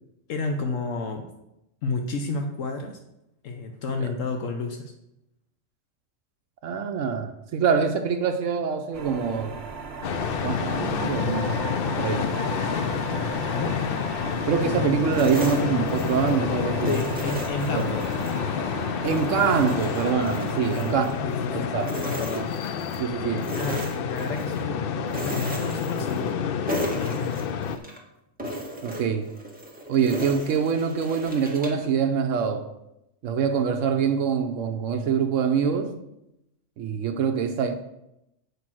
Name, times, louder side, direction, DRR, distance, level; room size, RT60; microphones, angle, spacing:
voice 1, 0.3-1.3 1.8-3.0 3.4-4.9 13.5-13.8 16.8-18.2 20.6-20.9 21.2-22.5 23.1-26.4 26.8-27.4, left 3 dB, 75° left, 1.2 m, -31 dB
voice 2, 6.6-9.6 10.4-12.3 14.4-16.9 17.7-17.9 19.0-21.1 21.5-21.9 22.3-22.4 23.0-23.5 28.8-29.3 29.9-32.7 33.2-36.0 36.8-37.7, right 6 dB, 75° right, 1.0 m, -25 dB
sound 1, 8.9-21.1, right 4 dB, 55° right, 1.1 m, -37 dB
sound 2, 10.0-27.8, left 7 dB, 60° left, 0.6 m, -29 dB
sound 3, 15.1-16.4 16.8-18.4 18.8-21.5 21.8-23.0 23.4-24.6 25.1-26.4 26.7-28.0 28.4-31.9, equal, 5° right, 1.5 m, -36 dB
8.2 x 5.1 x 6.1 m
omnidirectional pair, 1.4 m